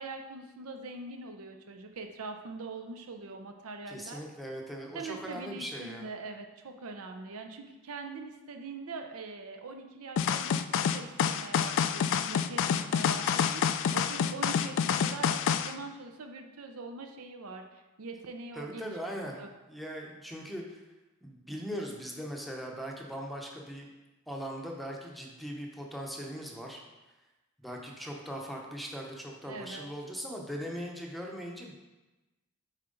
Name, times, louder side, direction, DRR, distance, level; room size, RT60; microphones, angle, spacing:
voice 1, 0.0-4.2 4.9-18.9 19.2-19.5 29.5-29.9, right 3 dB, 70° right, 5 dB, 0.6 m, -43 dB
voice 2, 3.9-6.1 18.5-20.8 21.2-23.9 24.3-26.8 27.6-31.7, equal, ahead, 0 dB, 0.8 m, -40 dB
sound 1, 10.2-15.7, left 7 dB, 60° left, 0.3 m, -28 dB
7.4 x 4.3 x 3.9 m, 1.1 s
head